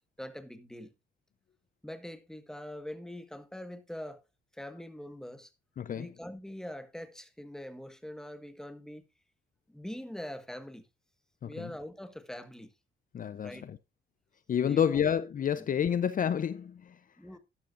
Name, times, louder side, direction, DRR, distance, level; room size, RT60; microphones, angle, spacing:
voice 1, 0.2-0.9 1.8-4.2 4.5-5.5 5.9-9.0 9.7-10.9 11.4-12.7 13.4-13.6 14.6-15.0 15.6-15.7 17.2-17.4, left 1 dB, 5° left, 1.5 m, -43 dB
voice 2, 5.8-6.1 11.4-11.7 13.1-13.8 14.5-17.0, left 8 dB, 45° left, 0.6 m, -29 dB
12.0 x 11.5 x 2.5 m
cardioid pair, 90°, 20 cm